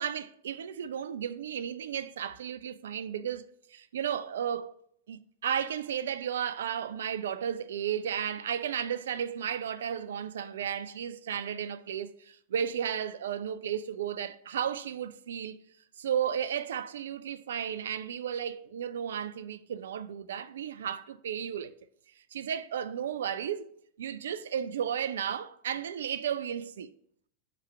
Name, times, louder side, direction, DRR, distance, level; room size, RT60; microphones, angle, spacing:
voice 1, 0.0-3.4 3.7-4.7 5.1-15.6 16.0-21.7 22.3-23.7 24.0-26.9, right 8 dB, 60° right, 0.3 m, -34 dB
7.4 x 3.1 x 5.4 m
figure-of-eight pair, 90°, 0 cm